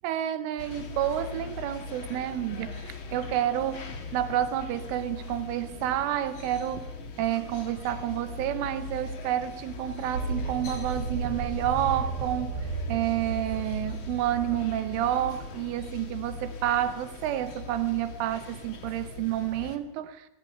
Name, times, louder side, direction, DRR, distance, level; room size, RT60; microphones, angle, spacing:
voice 1, 0.0-6.9 7.2-20.3, right 12 dB, 75° right, 3.5 m, -29 dB
sound 1, 0.6-19.8, left 4 dB, 65° left, 1.2 m, -41 dB
sound 2, 10.1-15.6, right 3 dB, 35° right, 4.9 m, -34 dB
24.5 x 17.0 x 9.4 m
omnidirectional pair, 5.8 m